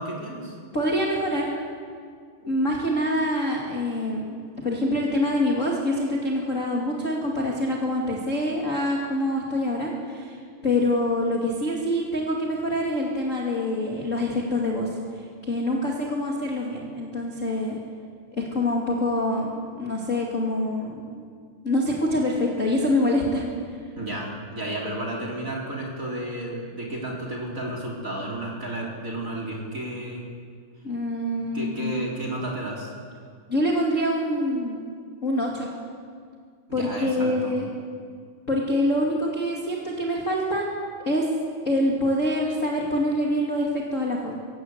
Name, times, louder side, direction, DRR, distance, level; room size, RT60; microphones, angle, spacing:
voice 1, 0.0-0.6 24.0-30.2 31.5-32.9 36.7-37.5, right 1 dB, 20° right, -1 dB, 3.6 m, -32 dB
voice 2, 0.7-1.5 2.4-4.2 4.6-10.4 10.6-14.9 15.4-17.8 18.3-21.0 21.6-23.4 30.8-31.9 33.5-34.8 35.2-35.7 36.7-37.7 38.5-40.6 41.0-41.2 41.6-44.3, left 1 dB, 30° left, -2 dB, 1.5 m, -25 dB
24.5 x 17.0 x 8.2 m, 2.1 s
omnidirectional pair, 5.6 m